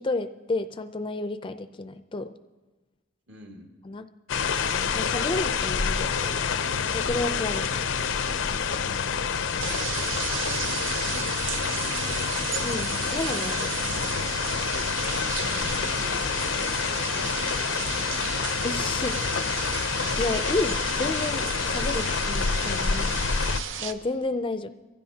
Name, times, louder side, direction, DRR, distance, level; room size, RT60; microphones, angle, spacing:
voice 1, 0.0-2.3 3.8-4.1 4.9-6.5 6.8-7.8 12.6-13.7 18.6-19.5 20.2-23.2 23.8-24.7, left 2 dB, 25° left, 10 dB, 0.4 m, -31 dB
voice 2, 3.3-3.7 9.8-12.2 14.9-18.3, equal, 65° right, 2 dB, 2.0 m, -48 dB
sound 1, 4.3-23.6, left 6 dB, 90° left, 0.6 m, -28 dB
sound 2, 9.4-23.9, right 8 dB, 85° right, 0.7 m, -34 dB
23.5 x 15.5 x 2.8 m, 1.2 s
head